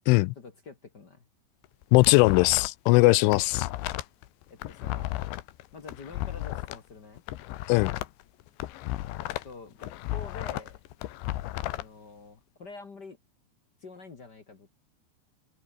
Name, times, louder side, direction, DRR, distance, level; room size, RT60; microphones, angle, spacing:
voice 1, 0.3-1.3 3.0-3.5 4.5-5.1 5.7-7.2 9.4-10.8 11.7-13.2 13.8-14.7, left 4 dB, 50° left, 1.2 m, -46 dB
sound 1, 1.6-2.9 3.2-6.8 7.2-9.5 9.8-11.8, left 15 dB, 75° left, 3.3 m, -34 dB
voice 2, 1.9-3.5 7.7-8.0, left 23 dB, 90° left, 3.1 m, -19 dB
omnidirectional pair, 5.5 m